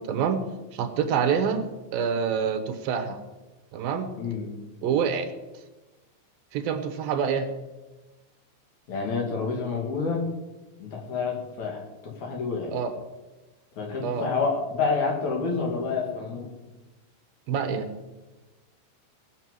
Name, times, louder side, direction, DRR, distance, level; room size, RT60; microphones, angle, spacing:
voice 1, 0.1-0.4 0.7-1.6 1.9-3.2 3.7-4.1 4.8-5.3 6.5-7.5 12.7-12.9 14.0-14.3 17.5-17.9, right 7 dB, 70° right, 7 dB, 2.3 m, -26 dB
voice 2, 4.2-4.5 8.9-10.3 10.8-12.7 13.8-16.5, left 4 dB, 50° left, 1 dB, 3.1 m, -28 dB
17.0 x 7.5 x 7.5 m, 1.1 s
omnidirectional pair, 5.1 m